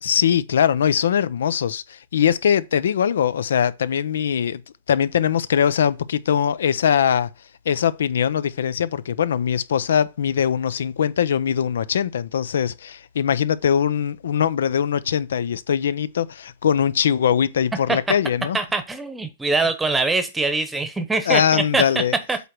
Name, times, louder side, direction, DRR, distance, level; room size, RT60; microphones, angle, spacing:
voice 1, 0.0-4.6 4.9-7.3 7.7-18.6 21.3-22.1, left 8 dB, 85° left, 0.6 m, -21 dB
voice 2, 18.5-21.9 22.3-22.4, right 3 dB, 5° right, 1.0 m, -23 dB
8.1 x 3.2 x 6.1 m
hypercardioid pair, 165°, 0 cm